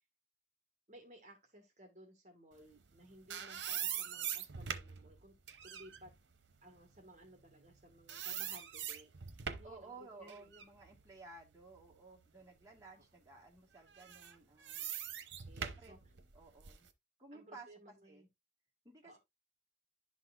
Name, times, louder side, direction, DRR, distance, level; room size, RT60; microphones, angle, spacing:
voice 1, 0.9-5.4 5.6-6.1 6.6-10.5 12.9-13.0 15.2-16.0 17.3-18.3 19.0-19.2, right 1 dB, 40° right, 1.4 m, -58 dB
sound 1, 2.9-7.8 8.1-9.8 10.3-12.2 12.7-12.8 13.9-16.9, right 9 dB, 80° right, 0.8 m, -43 dB
voice 2, 9.6-14.9 15.5-15.9 16.3-16.9 17.2-17.7 18.0-18.3 18.8-19.2, right 3 dB, 20° right, 1.5 m, -55 dB
11.5 x 4.1 x 2.4 m
head